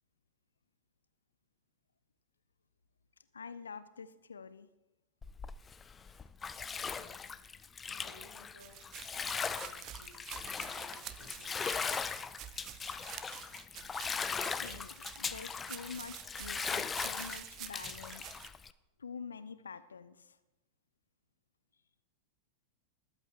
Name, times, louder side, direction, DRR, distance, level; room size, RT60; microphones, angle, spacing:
voice 1, 3.3-4.7 14.6-18.2 19.0-20.4, left 5 dB, 70° left, 13 dB, 0.6 m, -47 dB
Bathtub (filling or washing), 5.2-18.7, left 6 dB, 20° left, 0.4 m, -39 dB
voice 2, 6.8-7.2 7.9-9.0 9.3-12.2, right 1 dB, 85° right, 5 dB, 1.8 m, -60 dB
sound 1, 8.6-18.5, right 12 dB, 35° right, 0.6 m, -48 dB
20.0 x 8.2 x 3.6 m, 1.0 s
figure-of-eight pair, 90°, 0 cm